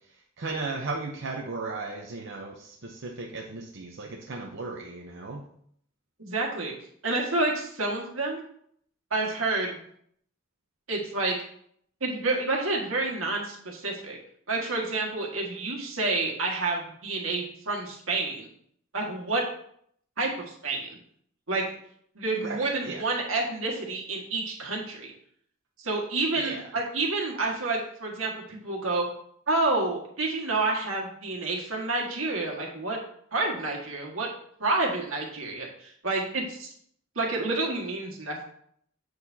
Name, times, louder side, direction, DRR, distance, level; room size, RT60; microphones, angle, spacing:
voice 1, 0.1-5.4 22.4-23.0 26.4-26.6, right 3 dB, 65° right, 0 dB, 0.8 m, -36 dB
voice 2, 6.2-6.7 7.0-8.4 9.1-9.8 10.9-11.4 12.0-14.2 14.5-18.5 18.9-19.4 20.2-20.9 21.5-21.7 22.1-25.1 25.8-29.0 29.5-33.0 33.3-34.3 34.6-36.7 37.1-38.5, right 3 dB, 80° right, -1 dB, 1.8 m, -29 dB
7.9 x 6.7 x 2.8 m, 0.66 s
head